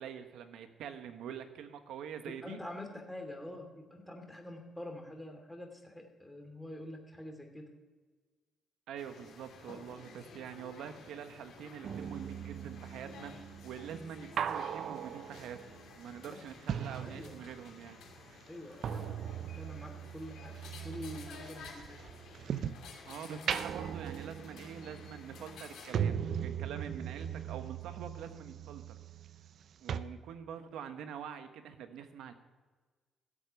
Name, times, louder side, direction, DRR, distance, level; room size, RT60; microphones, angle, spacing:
voice 1, 0.0-2.6 8.9-18.0 23.0-28.8 29.8-32.3, right 8 dB, 80° right, 8 dB, 1.2 m, -45 dB
voice 2, 2.2-7.7 16.2-16.4 17.0-17.4 18.5-19.2 19.6-20.6 20.8-21.9, left 1 dB, 5° left, 3 dB, 2.7 m, -46 dB
sound 1, 9.0-25.9, left 5 dB, 80° left, 3.0 m, -53 dB
sound 2, 11.8-17.8 18.1-22.9 23.3-29.6 29.9-30.0, right 8 dB, 65° right, 0.6 m, -39 dB
13.5 x 7.9 x 7.0 m, 1.4 s
cardioid pair, 90°, 0 cm